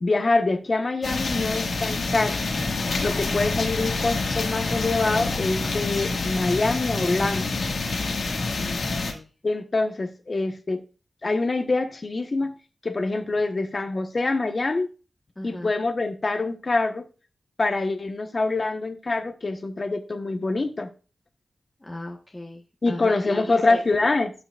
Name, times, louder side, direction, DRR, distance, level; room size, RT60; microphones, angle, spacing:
voice 1, 0.0-2.4 3.0-7.6 9.4-10.8 11.2-12.6 12.8-14.9 15.4-17.1 17.6-20.9 22.8-24.3, left 3 dB, 45° left, 1.3 m, -25 dB
sound 1, 1.0-9.1, left 3 dB, 85° left, 2.0 m, -27 dB
voice 2, 8.5-9.3 15.3-15.7 21.8-23.8, left 1 dB, 20° left, 1.5 m, -37 dB
17.0 x 6.1 x 2.5 m
wide cardioid pair, 80°, 0 cm